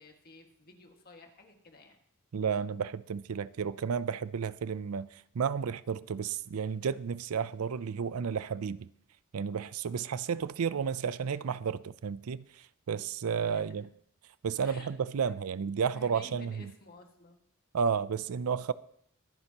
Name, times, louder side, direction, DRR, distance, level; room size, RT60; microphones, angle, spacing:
voice 1, 0.0-2.0 13.3-13.8 14.6-15.4 15.9-17.4, left 2 dB, 45° left, 1.8 m, -53 dB
voice 2, 2.3-8.9 9.3-13.9 14.4-16.7 17.7-18.7, right 6 dB, 85° right, 0.5 m, -32 dB
23.0 x 9.7 x 2.9 m
head